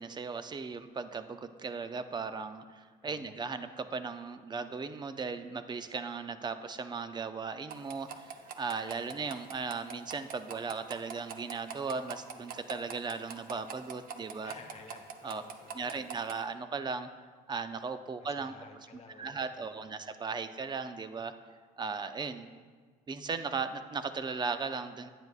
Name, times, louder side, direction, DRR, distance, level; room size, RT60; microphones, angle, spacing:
voice 1, 0.0-14.5 15.2-15.4 15.7-17.1 17.5-18.5 19.2-21.3 21.8-22.5 23.1-25.1, right 4 dB, 25° right, 10 dB, 0.5 m, -37 dB
voice 2, 3.0-3.4 8.9-9.2 14.4-16.0 18.2-20.1, left 4 dB, 40° left, 3 dB, 1.1 m, -54 dB
sound 1, 7.7-16.4, right 6 dB, 55° right, 0.8 m, -45 dB
9.9 x 9.3 x 2.4 m, 1.5 s
cardioid pair, 110°, 17 cm